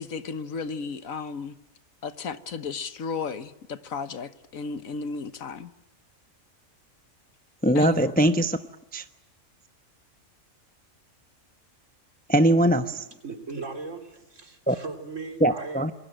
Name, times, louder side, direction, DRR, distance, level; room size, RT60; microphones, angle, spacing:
voice 1, 0.0-1.5 2.0-5.7 7.7-8.1, left 5 dB, 80° left, 1.6 m, -34 dB
voice 2, 7.6-8.6 8.9-9.0 12.3-13.0 14.7-14.8 15.4-15.9, right 1 dB, 10° left, 0.8 m, -21 dB
voice 3, 13.2-15.9, right 4 dB, 65° right, 3.7 m, -38 dB
27.5 x 22.5 x 9.1 m
omnidirectional pair, 1.4 m